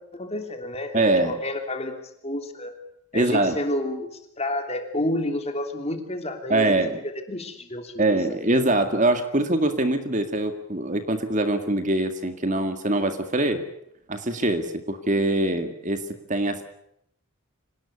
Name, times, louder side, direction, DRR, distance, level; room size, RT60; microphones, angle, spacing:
voice 1, 0.1-1.9 2.2-2.8 3.1-4.1 4.4-8.0, left 1 dB, 30° left, 6 dB, 3.1 m, -30 dB
voice 2, 0.9-1.4 3.1-3.6 6.5-7.0 8.0-13.6 14.1-16.6, right 2 dB, 35° right, 8 dB, 2.0 m, -23 dB
25.5 x 19.0 x 8.6 m, 0.75 s
head